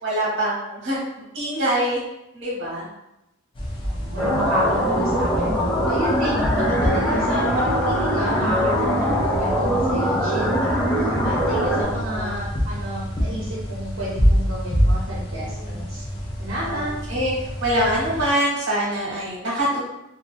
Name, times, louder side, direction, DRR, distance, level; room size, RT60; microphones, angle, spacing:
voice 1, 0.0-1.0 1.3-2.0 2.3-2.9 11.7-12.3 15.4-15.6 16.7-17.3 17.6-19.8, right 1 dB, 60° right, -4 dB, 1.0 m, -24 dB
sound 1, 3.6-18.3, equal, 25° left, 0.4 m, -27 dB
voice 2, 3.8-16.0 16.4-16.9, equal, 75° right, -7 dB, 0.6 m, -30 dB
sound 2, 4.2-11.8, equal, 5° left, 0.9 m, -22 dB
2.6 x 2.2 x 2.3 m, 0.89 s
head